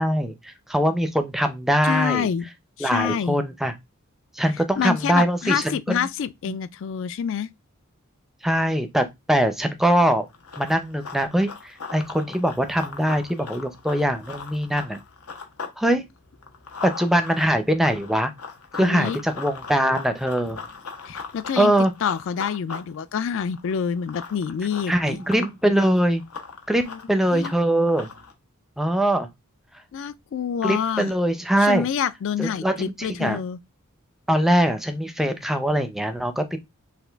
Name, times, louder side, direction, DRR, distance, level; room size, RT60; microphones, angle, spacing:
voice 1, 0.0-2.3 2.8-3.7 4.3-6.0 8.4-10.3 10.6-11.5 11.9-15.0 15.8-16.0 16.8-18.3 18.7-20.6 21.6-21.9 24.9-26.2 26.7-26.8 27.1-28.1 28.8-29.3 30.6-31.9 32.4-33.4 34.3-36.6, right 1 dB, ahead, 0.5 m, -22 dB
voice 2, 1.8-2.5 2.8-3.4 4.8-7.5 18.8-19.2 21.1-21.7 22.0-25.2 26.8-27.0 27.3-27.5 29.9-31.1 31.6-33.6, left 7 dB, 60° left, 0.3 m, -27 dB
Run, 10.3-15.8 16.1-28.3, left 5 dB, 85° left, 1.0 m, -39 dB
5.8 x 2.4 x 3.4 m
head